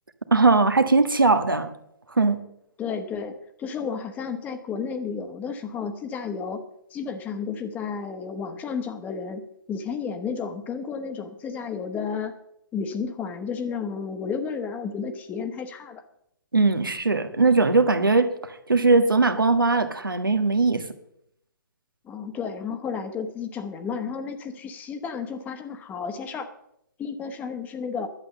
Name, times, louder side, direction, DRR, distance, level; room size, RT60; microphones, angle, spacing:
voice 1, 0.3-1.7 2.1-2.4 16.5-20.8, right 3 dB, 85° right, 8 dB, 1.5 m, -20 dB
voice 2, 2.8-6.6 6.9-12.3 12.7-16.0 22.0-26.5 27.0-28.1, left 6 dB, 15° left, 8 dB, 1.2 m, -32 dB
11.5 x 8.3 x 6.8 m, 0.75 s
figure-of-eight pair, 135°, 11 cm